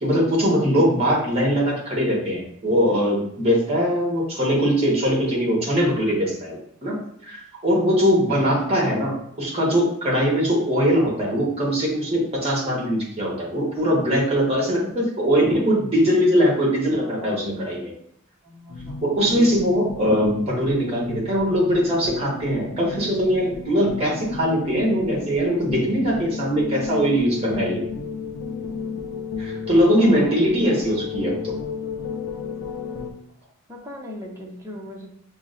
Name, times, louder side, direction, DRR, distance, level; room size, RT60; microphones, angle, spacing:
voice 1, 0.0-7.0 7.2-17.8 19.0-27.8 29.4-31.5, equal, 30° right, -3 dB, 1.2 m, -21 dB
voice 2, 7.8-8.5 17.1-17.4 18.4-19.1 30.0-30.4 33.7-35.1, left 1 dB, 15° right, -2 dB, 0.6 m, -39 dB
sound 1, 18.7-33.1, left 5 dB, 90° left, 0.4 m, -33 dB
5.9 x 2.1 x 2.5 m, 0.70 s
head